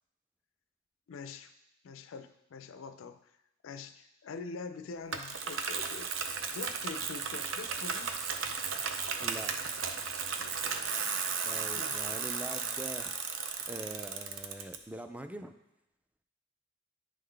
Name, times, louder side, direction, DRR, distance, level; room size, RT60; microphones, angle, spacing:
voice 1, 1.1-1.5 1.8-3.3 3.6-6.1 6.5-8.2 10.4-12.2, left 4 dB, 75° left, 10 dB, 0.4 m, -45 dB
Bicycle, 5.1-14.8, right 6 dB, 70° right, 0.5 m, -35 dB
voice 2, 9.2-9.5 11.4-13.1 13.7-15.5, right 1 dB, 5° right, 8 dB, 0.3 m, -43 dB
9.9 x 3.8 x 3.3 m, 0.86 s
head